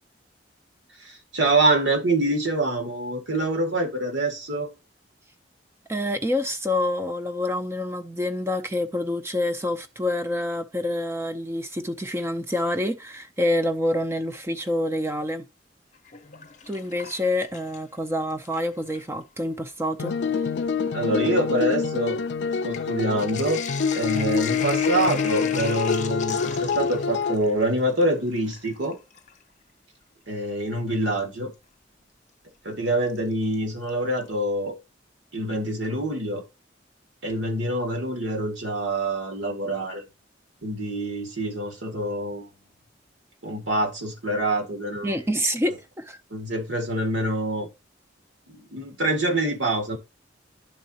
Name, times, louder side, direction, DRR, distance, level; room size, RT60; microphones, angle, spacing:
voice 1, 1.0-4.7 20.9-22.2 22.6-23.6 23.9-29.0 30.3-31.5 32.6-34.8 35.3-36.4 37.2-40.0 40.6-42.5 43.4-45.2 46.3-47.7 48.5-50.0, right 1 dB, 80° right, 1.9 m, -26 dB
voice 2, 5.9-15.4 16.7-20.1 45.0-46.2, left 1 dB, 15° right, 0.5 m, -27 dB
Sink (filling or washing), 15.9-18.0 18.3-19.1 19.9-20.0 20.3-29.4 31.2-31.3 33.1-33.5 33.9-34.0 34.2-34.3, left 7 dB, 40° left, 0.7 m, -38 dB
sound 1, 20.0-27.4, left 5 dB, 65° left, 0.4 m, -26 dB
11.0 x 3.8 x 2.8 m
head